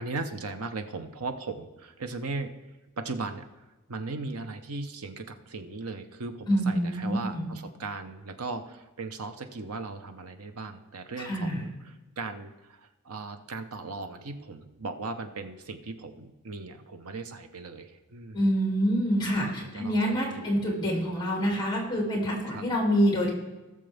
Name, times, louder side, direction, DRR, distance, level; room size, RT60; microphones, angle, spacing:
voice 1, 0.0-2.5 3.0-3.5 3.9-18.4 19.6-20.5 22.5-22.6, right 3 dB, 90° right, 8 dB, 0.9 m, -38 dB
voice 2, 6.5-7.5 11.2-11.6 18.3-23.3, equal, 20° left, -1 dB, 2.5 m, -26 dB
19.0 x 6.8 x 3.5 m, 1.1 s
head